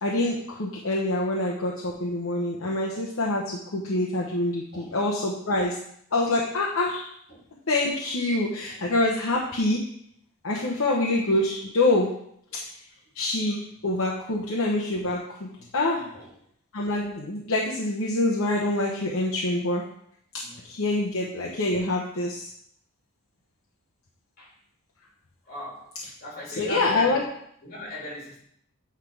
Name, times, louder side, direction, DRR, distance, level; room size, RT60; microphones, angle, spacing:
voice 1, 0.0-5.7 6.1-7.1 7.7-9.8 10.4-12.1 13.1-16.1 16.7-19.8 20.6-22.5 26.6-27.2, left 2 dB, 65° left, -3 dB, 0.8 m, -26 dB
voice 2, 15.9-16.3 20.3-20.9 24.4-24.6 25.4-25.9 26.2-27.3 27.6-28.4, left 1 dB, 45° left, -5 dB, 2.7 m, -40 dB
8.1 x 3.4 x 4.8 m, 0.69 s
head